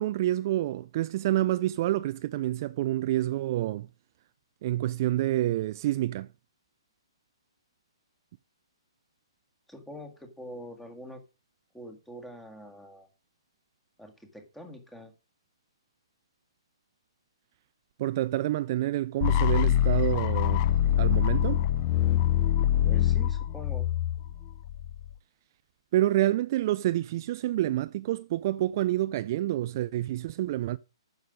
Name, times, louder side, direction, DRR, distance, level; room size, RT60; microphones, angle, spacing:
voice 1, 0.0-3.9 4.6-6.3 18.0-20.7 21.0-21.6 25.9-30.8, right 14 dB, 40° right, 0.4 m, -28 dB
voice 2, 9.7-11.2 11.7-13.1 14.0-15.1 22.8-23.9, equal, 5° left, 1.8 m, -45 dB
sound 1, 19.2-25.1, left 11 dB, 35° left, 0.5 m, -24 dB
9.4 x 6.6 x 5.0 m
figure-of-eight pair, 130°, 3 cm